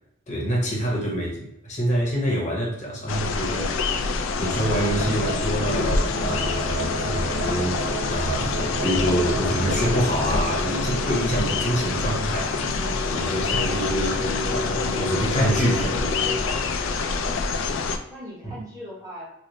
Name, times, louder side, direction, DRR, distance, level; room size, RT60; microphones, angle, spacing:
voice 1, 0.3-3.8 4.4-16.2 16.5-16.6 18.4-18.5, equal, 35° left, -3 dB, 0.8 m, -26 dB
sound 1, 3.1-18.0, left 4 dB, 70° left, 0.3 m, -26 dB
sound 2, 4.6-16.4, right 1 dB, 55° right, 1.0 m, -32 dB
voice 2, 18.1-19.2, equal, 15° right, -7 dB, 1.0 m, -41 dB
3.0 x 2.0 x 3.8 m, 0.82 s
head